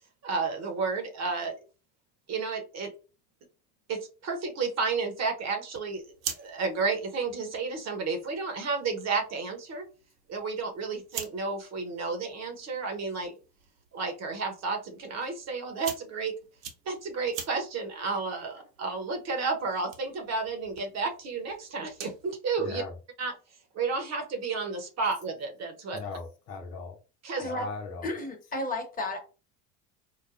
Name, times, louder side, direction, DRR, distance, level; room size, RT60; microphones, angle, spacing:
voice 1, 0.2-1.6 2.3-2.9 3.9-6.1 6.4-9.9 10.3-13.4 13.9-16.4 16.9-22.8 23.2-23.3 23.7-26.0 27.2-27.5, right 4 dB, 35° right, 4 dB, 1.0 m, -32 dB
sound 1, 5.9-22.3, right 8 dB, 60° right, 1.1 m, -46 dB
voice 2, 22.6-22.9 25.9-27.0 27.4-28.1, left 4 dB, 80° left, 3 dB, 0.9 m, -38 dB
voice 3, 27.4-27.7 28.0-29.2, left 2 dB, 20° left, 3 dB, 1.1 m, -33 dB
4.8 x 2.1 x 2.4 m, 0.34 s
hypercardioid pair, 80°, 47 cm